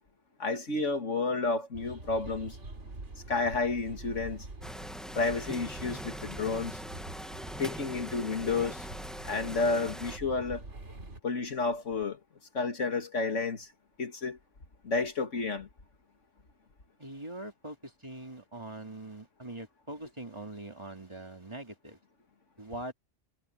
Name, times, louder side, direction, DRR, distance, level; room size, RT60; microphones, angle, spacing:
voice 1, 0.4-2.6 3.3-4.5 5.1-6.8 7.6-8.9 9.2-10.7 11.2-12.2 12.5-13.7 14.0-14.4 14.8-15.7, left 3 dB, 75° left, 2.4 m, -31 dB
sound 1, 1.7-11.2, right 2 dB, 70° right, 3.2 m, -45 dB
sound 2, 4.6-10.2, equal, ahead, 0.9 m, -42 dB
voice 2, 17.0-22.0 22.6-22.9, right 1 dB, 20° right, 2.8 m, -42 dB
omnidirectional pair, 1.3 m